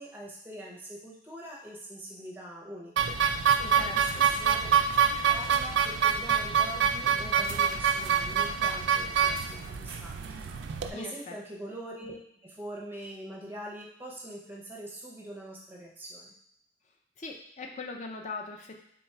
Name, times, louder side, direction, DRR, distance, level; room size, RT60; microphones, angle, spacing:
voice 1, 0.0-3.1 3.6-4.7 5.3-10.2 10.9-16.3, right 1 dB, 10° right, -2 dB, 0.6 m, -43 dB
sound 1, 3.0-10.9, right 7 dB, 65° right, 0.3 m, -26 dB
voice 2, 17.2-18.8, left 3 dB, 35° left, 2 dB, 0.4 m, -39 dB
3.9 x 2.3 x 4.1 m, 0.76 s
head